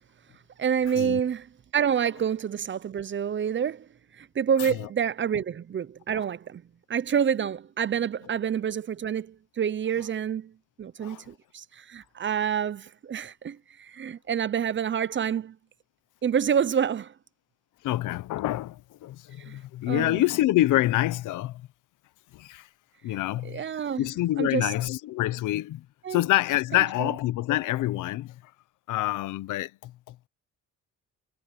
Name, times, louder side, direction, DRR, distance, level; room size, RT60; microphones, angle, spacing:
voice 1, 0.6-1.5 1.7-3.9 4.1-6.6 6.9-10.5 10.8-15.6 16.2-17.1 19.5-19.6 19.9-20.2 23.4-24.1 24.4-24.7 26.0-26.2 26.7-27.1, right 8 dB, 40° right, 0.7 m, -28 dB
voice 2, 17.8-21.6 22.3-22.7 23.0-23.6 24.0-25.8 26.1-28.4 28.9-30.3, left 15 dB, 90° left, 1.0 m, -27 dB
cardioid pair, 90°, 30 cm